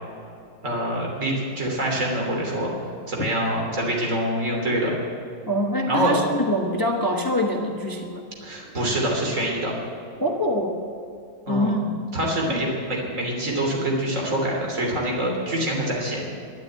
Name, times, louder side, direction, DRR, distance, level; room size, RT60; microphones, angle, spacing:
voice 1, 0.6-2.7 3.1-4.9 5.9-6.2 8.4-9.7 11.5-11.7 12.1-16.2, right 1 dB, 40° right, -1 dB, 3.5 m, -25 dB
voice 2, 5.5-8.2 10.2-10.8 11.5-12.0, equal, 15° left, 2 dB, 0.9 m, -24 dB
12.0 x 11.5 x 8.9 m, 2.5 s
omnidirectional pair, 2.0 m